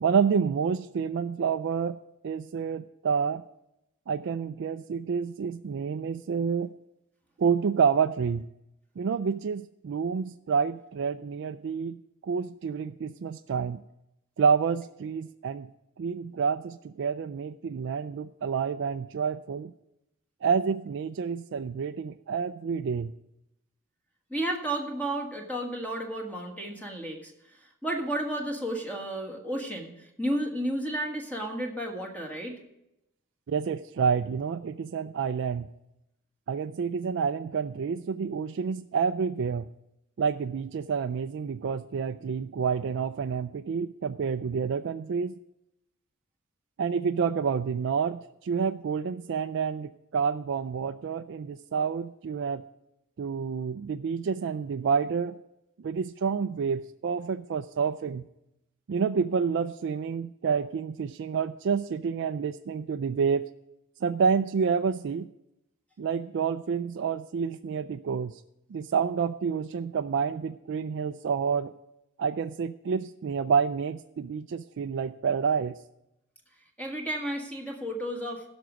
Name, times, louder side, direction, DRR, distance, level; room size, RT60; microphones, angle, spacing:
voice 1, 0.0-2.0 2.2-3.4 4.1-6.7 7.4-8.4 9.0-13.8 14.4-15.7 16.0-19.7 20.4-23.1 33.5-35.6 36.5-39.7 40.2-45.4 46.8-52.6 53.2-55.4 55.8-58.2 58.9-63.5 64.0-65.3 66.0-68.4 68.7-71.7 72.2-75.8, right 6 dB, 55° right, 8 dB, 0.3 m, -28 dB
voice 2, 24.3-27.3 27.8-32.5 76.8-78.4, right 1 dB, 5° left, 1 dB, 1.5 m, -32 dB
15.5 x 6.1 x 5.1 m, 0.85 s
head